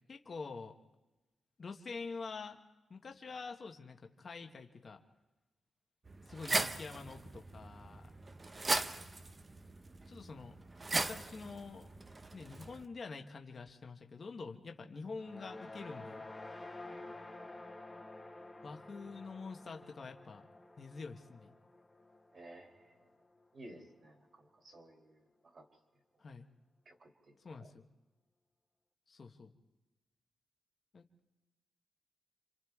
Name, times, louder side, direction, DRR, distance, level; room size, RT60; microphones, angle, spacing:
voice 1, 0.1-0.7 1.6-2.6 2.9-5.0 6.3-8.1 10.1-10.5 10.9-11.9 12.3-16.3 18.6-20.4 20.8-21.5 26.2-26.5 27.4-27.9 29.1-29.5 30.9-31.0, left 4 dB, 35° left, 4 dB, 1.2 m, -46 dB
sound 1, 6.0-12.8, right 2 dB, 20° right, 0.7 m, -39 dB
sound 2, 15.1-23.5, left 2 dB, 10° left, 1.3 m, -51 dB
voice 2, 22.3-22.7 23.5-24.2 24.6-25.2 25.5-25.6 26.9-27.3, right 1 dB, 40° right, 1 dB, 2.8 m, -54 dB
29.0 x 27.0 x 3.6 m, 1.1 s
wide cardioid pair, 175°, 0 cm